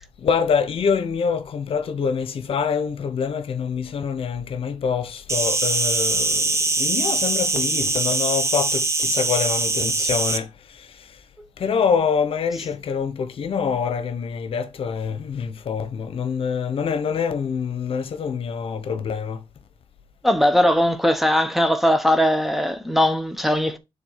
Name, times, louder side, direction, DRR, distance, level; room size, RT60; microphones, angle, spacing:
voice 1, 0.2-10.5 10.8-10.9 11.6-19.4, left 6 dB, 65° left, 1.0 m, -25 dB
Insect, 5.3-10.4, right 3 dB, 30° right, 0.9 m, -22 dB
voice 2, 20.2-23.8, equal, ahead, 0.9 m, -19 dB
6.8 x 3.7 x 5.7 m
cardioid pair, 105°, 10 cm